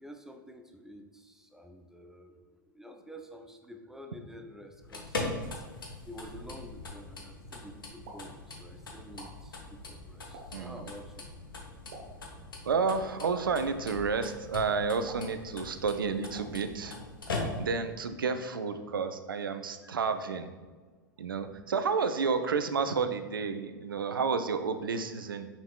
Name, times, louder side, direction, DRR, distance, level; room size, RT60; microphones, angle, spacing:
voice 1, 0.0-5.7 6.0-11.3, equal, 5° right, 4 dB, 0.4 m, -49 dB
sound 1, 4.7-17.9, left 2 dB, 80° left, 0.8 m, -41 dB
Explosion, 7.8-18.1, right 2 dB, 60° right, 1.0 m, -54 dB
voice 2, 10.5-10.8 12.7-17.0 17.6-20.5 21.2-25.5, right 5 dB, 85° right, 9 dB, 0.4 m, -31 dB
5.8 x 3.5 x 2.3 m, 1.4 s
hypercardioid pair, 95°, 11 cm